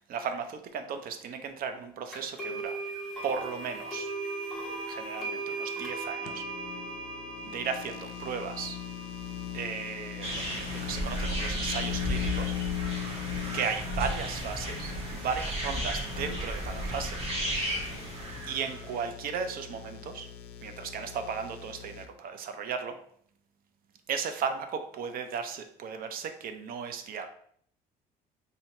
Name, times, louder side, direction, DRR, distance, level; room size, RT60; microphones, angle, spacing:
voice 1, 0.0-2.8 3.2-4.1 4.9-6.4 7.4-8.8 9.5-12.5 13.5-17.2 18.5-20.3 20.6-23.0 24.1-27.3, right 6 dB, 60° right, 7 dB, 0.5 m, -35 dB
sound 1, 2.1-11.0, right 3 dB, ahead, 1.4 m, -38 dB
sound 2, 6.3-22.1, left 10 dB, 75° left, 0.4 m, -39 dB
sound 3, 10.2-19.0, right 1 dB, 35° right, 1.2 m, -34 dB
2.8 x 2.7 x 4.2 m, 0.64 s
cardioid pair, 110°, 17 cm